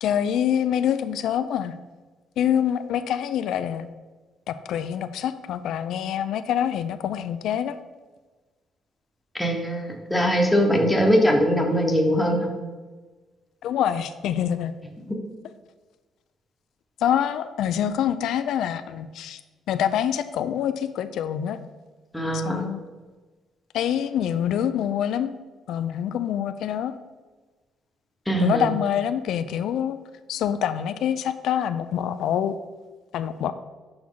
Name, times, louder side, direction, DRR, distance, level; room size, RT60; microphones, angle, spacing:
voice 1, 0.0-1.8 2.4-3.9 4.5-7.8 13.6-14.7 17.0-19.4 19.7-21.6 22.3-22.8 23.7-25.3 25.7-26.9 28.4-30.0 30.3-32.5 33.1-33.5, left 9 dB, 70° left, 11 dB, 0.3 m, -25 dB
voice 2, 9.3-12.5 22.1-22.6 28.3-28.7, equal, 5° left, 1 dB, 0.9 m, -21 dB
6.1 x 6.0 x 3.7 m, 1.3 s
cardioid pair, 155°, 0 cm